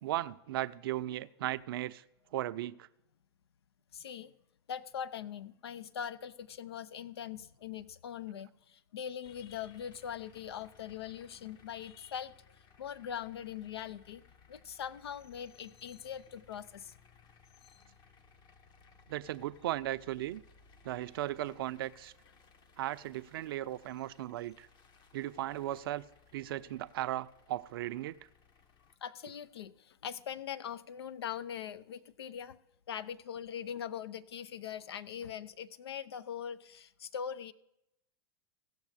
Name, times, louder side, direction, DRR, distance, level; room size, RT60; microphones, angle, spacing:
voice 1, 0.0-2.0 2.3-2.9 19.1-20.4 20.8-22.1 22.8-24.7 25.1-26.1 26.3-28.2, right 14 dB, 65° right, 15 dB, 0.5 m, -36 dB
voice 2, 3.9-4.3 4.7-12.3 12.8-14.2 14.5-16.9 17.6-17.9 29.0-32.6 32.9-37.5, left 8 dB, 75° left, 15 dB, 0.5 m, -42 dB
sound 1, 9.2-29.0, left 5 dB, 35° left, 1.1 m, -63 dB
16.5 x 6.6 x 4.8 m, 0.85 s
hypercardioid pair, 100°, 13 cm